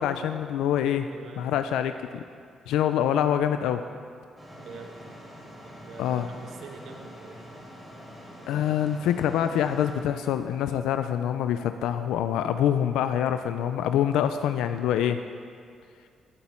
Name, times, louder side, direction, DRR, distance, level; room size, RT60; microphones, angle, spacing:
voice 1, 0.0-1.1 1.4-2.2 2.7-3.8 6.0-6.3 8.5-15.2, left 10 dB, 90° left, 9 dB, 0.4 m, -25 dB
voice 2, 1.1-1.8 4.6-5.0 5.6-7.4, right 4 dB, 75° right, 3 dB, 1.5 m, -45 dB
sound 1, 4.4-10.0, equal, 5° right, 3.4 m, -45 dB
17.0 x 8.1 x 4.4 m, 2.3 s
cardioid pair, 90°, 0 cm